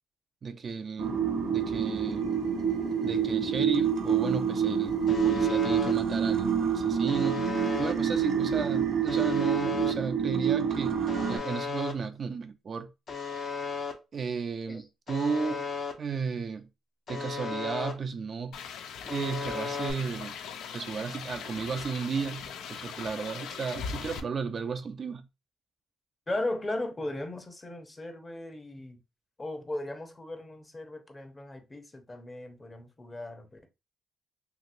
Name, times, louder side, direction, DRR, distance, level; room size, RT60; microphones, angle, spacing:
voice 1, 0.4-1.2 1.5-2.3 3.0-11.0 11.3-12.9 14.1-15.6 16.0-16.7 17.1-18.6 19.1-20.3 20.7-25.3, right 5 dB, 45° right, 0.3 m, -34 dB
sound 1, 1.0-11.4, right 7 dB, 70° right, 0.8 m, -27 dB
Alarm, 5.1-5.9 7.1-7.9 9.1-9.9 11.1-11.9 13.1-13.9 15.1-15.9 17.1-17.9 19.1-19.9, left 5 dB, 60° left, 0.8 m, -35 dB
sound 2, 18.5-24.2, left 6 dB, 80° left, 0.4 m, -40 dB
voice 2, 26.3-29.0 29.4-33.7, left 1 dB, 25° left, 0.7 m, -37 dB
2.9 x 2.8 x 2.5 m
cardioid pair, 90°, 0 cm